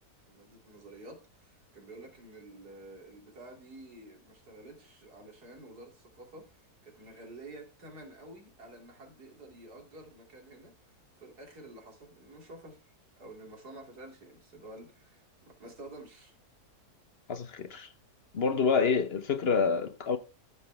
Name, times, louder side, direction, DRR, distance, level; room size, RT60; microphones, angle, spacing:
voice 1, 0.3-10.7 11.2-16.3, right 2 dB, 75° right, 3.4 m, -50 dB
voice 2, 17.3-17.9 18.3-20.2, left 5 dB, 45° left, 1.1 m, -27 dB
14.5 x 6.3 x 3.4 m
omnidirectional pair, 1.7 m